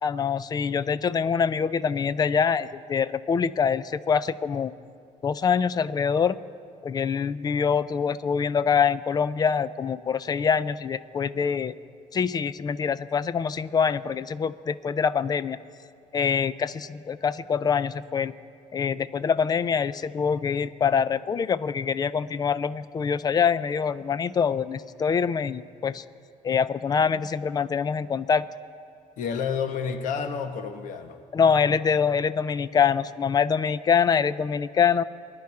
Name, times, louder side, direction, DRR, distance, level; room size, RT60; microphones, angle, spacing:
voice 1, 0.0-4.7 5.2-6.4 6.8-11.7 12.1-15.6 16.1-18.3 18.7-26.0 26.4-28.4 31.3-35.0, left 6 dB, 30° left, 16 dB, 0.4 m, -25 dB
voice 2, 29.2-31.2, left 6 dB, 75° left, 7 dB, 1.1 m, -30 dB
23.5 x 10.5 x 4.8 m, 2.4 s
cardioid pair, 150°, 13 cm